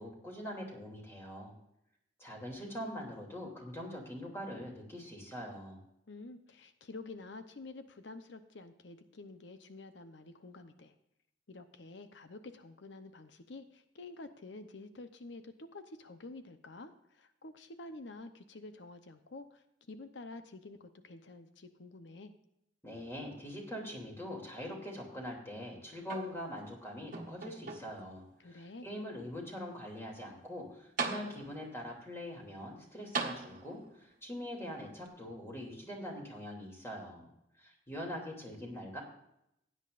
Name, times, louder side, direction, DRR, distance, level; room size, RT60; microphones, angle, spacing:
voice 1, 0.0-1.5 2.2-5.8 22.8-37.3 37.6-39.0, equal, 15° left, -1 dB, 2.8 m, -43 dB
voice 2, 6.1-10.9 11.5-22.3 28.4-28.9, left 2 dB, 70° left, 9 dB, 0.8 m, -49 dB
sound 1, 26.0-26.7 27.1-28.1 28.8-28.9 30.5-30.6 31.0-31.7 33.1-34.0 35.1-35.2, right 4 dB, 45° right, 1.5 m, -39 dB
16.5 x 9.6 x 2.5 m, 0.79 s
head